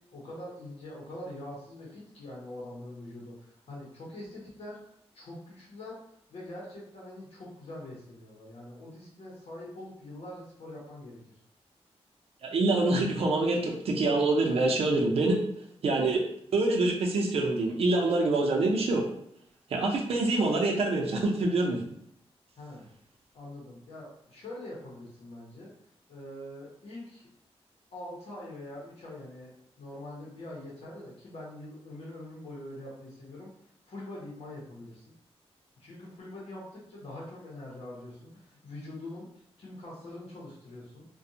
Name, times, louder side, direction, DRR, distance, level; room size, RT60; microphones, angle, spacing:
voice 1, 0.1-4.8 5.1-6.0 6.3-11.2 22.6-22.9 23.3-25.7 26.1-27.3 27.9-33.5 33.9-35.0 35.8-41.0, left 1 dB, 65° left, -6 dB, 1.0 m, -44 dB
voice 2, 12.4-15.4 15.8-16.2 16.5-19.1 19.7-21.8, right 2 dB, 70° right, 0 dB, 0.5 m, -25 dB
2.5 x 2.2 x 2.7 m, 0.72 s
wide cardioid pair, 160°, 11 cm